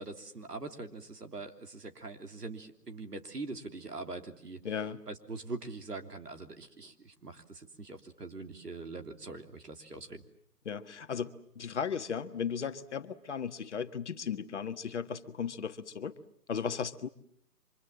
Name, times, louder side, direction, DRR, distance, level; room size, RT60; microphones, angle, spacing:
voice 1, 0.0-4.6 5.1-10.2, right 3 dB, 80° right, 6 dB, 3.3 m, -43 dB
voice 2, 4.6-5.0 10.6-16.1 16.5-17.1, left 7 dB, 45° left, 9 dB, 1.5 m, -36 dB
29.5 x 25.5 x 7.7 m, 0.66 s
figure-of-eight pair, 150°, 47 cm